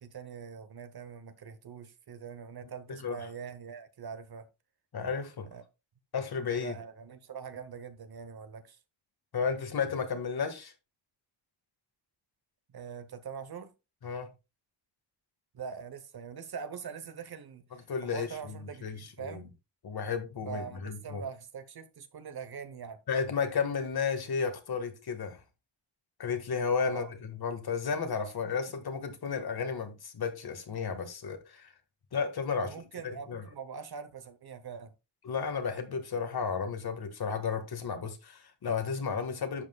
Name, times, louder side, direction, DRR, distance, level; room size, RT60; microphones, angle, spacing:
voice 1, 0.0-4.5 5.5-5.6 6.5-8.8 12.7-13.7 15.5-19.5 20.5-23.0 26.8-27.1 28.4-28.5 32.6-34.9, right 6 dB, 50° right, 1.0 m, -43 dB
voice 2, 4.9-5.5 6.1-6.7 9.3-10.7 14.0-14.3 17.9-18.6 18.8-19.4 19.8-21.2 23.1-25.4 26.2-31.7 32.1-32.7 33.0-33.4 35.2-39.6, left 5 dB, 50° left, 1.7 m, -33 dB
11.5 x 7.5 x 2.3 m
wide cardioid pair, 145°, 50 cm